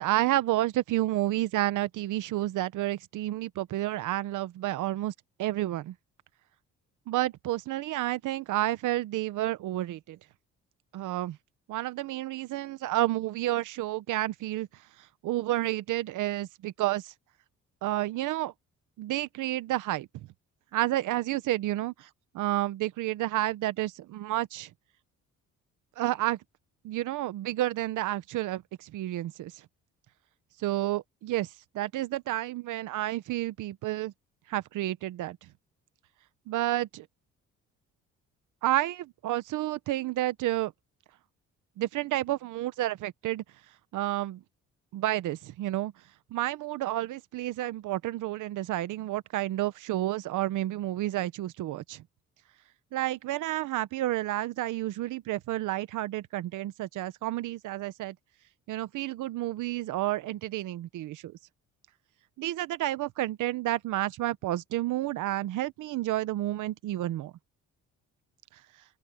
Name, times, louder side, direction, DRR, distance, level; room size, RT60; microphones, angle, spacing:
voice 1, 0.0-5.1 5.4-5.9 7.1-10.2 10.9-11.4 11.7-14.7 15.2-17.1 17.8-18.5 19.0-20.3 20.7-22.1 22.3-24.7 26.0-26.4 26.8-29.5 30.6-31.5 31.7-34.1 34.5-35.4 36.5-37.1 38.6-40.7 41.8-43.4 43.9-44.4 44.9-45.9 46.3-52.0 52.9-58.1 58.7-61.4 62.4-67.3, right 15 dB, 85° right, 1.1 m, -30 dB
open air
cardioid pair, 90°, 30 cm